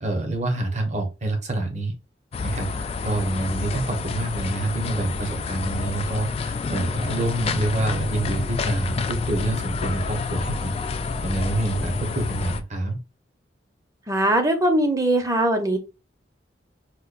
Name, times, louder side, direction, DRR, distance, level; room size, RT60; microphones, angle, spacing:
voice 1, 0.0-1.9 2.4-10.7 11.2-13.0, right 2 dB, 40° right, 2 dB, 1.0 m, -27 dB
sound 1, 2.3-12.6, left 4 dB, 35° left, 0.3 m, -28 dB
voice 2, 14.1-15.8, right 1 dB, 20° right, 5 dB, 0.6 m, -21 dB
4.3 x 2.3 x 2.4 m, 0.28 s
head